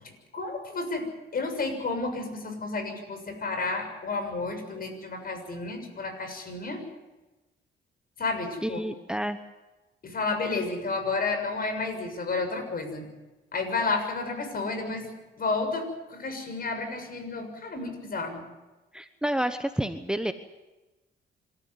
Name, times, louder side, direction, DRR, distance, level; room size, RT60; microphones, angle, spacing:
voice 1, 0.3-1.1 1.3-6.8 8.2-8.8 10.0-13.1 13.5-15.1 15.4-18.4, left 3 dB, 50° left, 7 dB, 6.7 m, -31 dB
voice 2, 8.6-9.4 18.9-20.3, right 1 dB, 5° right, 9 dB, 1.1 m, -29 dB
26.5 x 14.0 x 9.6 m, 1.1 s
cardioid pair, 90°, 20 cm